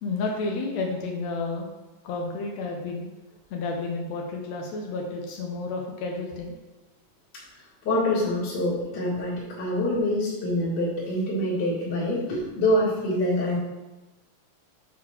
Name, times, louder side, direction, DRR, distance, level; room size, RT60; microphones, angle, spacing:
voice 1, 0.0-1.7 2.0-3.1 3.5-6.5, left 3 dB, 80° left, 0 dB, 1.5 m, -31 dB
voice 2, 7.8-13.6, left 1 dB, 35° left, -10 dB, 2.1 m, -25 dB
6.2 x 3.9 x 5.8 m, 1.1 s
omnidirectional pair, 4.0 m